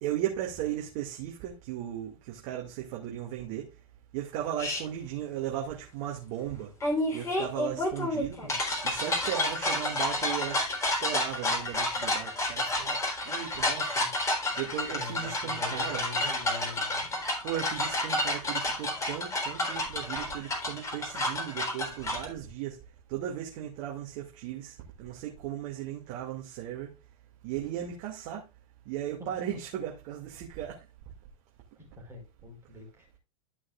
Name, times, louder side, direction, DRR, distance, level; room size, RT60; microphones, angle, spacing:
voice 1, 0.0-3.7 4.1-6.7 7.1-8.4 8.8-13.9 14.6-16.0 17.4-22.8 23.1-26.9 27.4-28.5 28.9-30.8, right 11 dB, 50° right, 2.4 m, -36 dB
sound 1, 4.6-4.8 6.8-22.3, left 1 dB, 15° left, 3.9 m, -30 dB
voice 2, 14.9-17.0 29.2-29.4 31.8-33.2, left 2 dB, 15° right, 4.6 m, -44 dB
14.0 x 6.2 x 2.5 m
hypercardioid pair, 115°, 18 cm